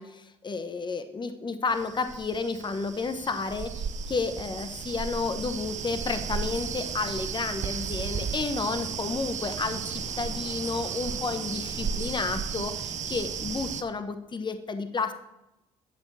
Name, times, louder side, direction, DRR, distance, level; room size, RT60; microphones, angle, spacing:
voice 1, 0.0-15.1, left 4 dB, 30° left, 10 dB, 1.0 m, -31 dB
sound 1, 1.7-13.8, right 6 dB, 45° right, 0.8 m, -34 dB
sound 2, 8.1-12.4, right 3 dB, 85° right, 2.1 m, -49 dB
11.5 x 7.2 x 4.2 m, 0.92 s
hypercardioid pair, 60°, 16 cm